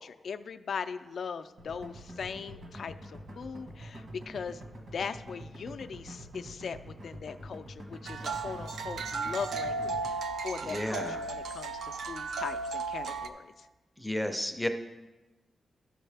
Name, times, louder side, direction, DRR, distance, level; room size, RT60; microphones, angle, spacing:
voice 1, 0.0-4.6 4.9-13.7, left 6 dB, 60° left, 10 dB, 0.4 m, -40 dB
sound 1, 1.6-10.1, right 1 dB, 60° right, 1.5 m, -46 dB
sound 2, 8.0-13.3, right 4 dB, 75° right, 0.5 m, -35 dB
voice 2, 10.6-11.2 14.0-14.7, left 1 dB, ahead, 6 dB, 0.5 m, -32 dB
12.0 x 6.4 x 3.4 m, 1.1 s
wide cardioid pair, 145°, 0 cm